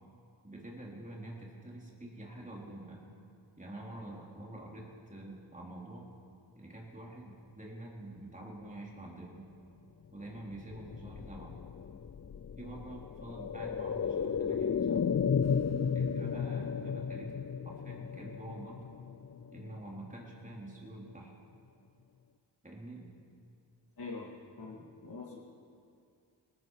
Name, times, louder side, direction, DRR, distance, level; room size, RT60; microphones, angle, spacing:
voice 1, 0.4-3.0 3.6-6.1 6.6-9.5 10.1-11.6 12.6-15.1 15.9-17.3 17.6-18.8 19.5-21.3 22.6-23.1, right 1 dB, 15° right, -3 dB, 3.5 m, -46 dB
sound 1, 10.5-20.2 20.5-20.6, left 6 dB, 35° left, 0.6 m, -34 dB
voice 2, 24.0-24.3 24.6-25.4, left 4 dB, 55° left, -4 dB, 2.5 m, -44 dB
19.5 x 14.5 x 4.9 m, 2.4 s
cardioid pair, 40°, 45 cm